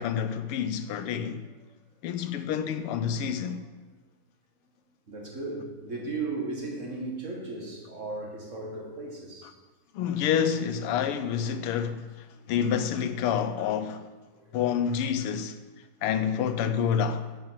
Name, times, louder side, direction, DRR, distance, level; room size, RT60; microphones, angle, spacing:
voice 1, 0.0-1.4 2.0-3.6 9.9-14.0 14.5-15.6 16.0-17.2, left 8 dB, 85° left, 1.7 m, -28 dB
voice 2, 5.1-9.5 12.3-12.5, right 3 dB, 35° right, 2.0 m, -36 dB
10.0 x 5.7 x 7.5 m
omnidirectional pair, 2.4 m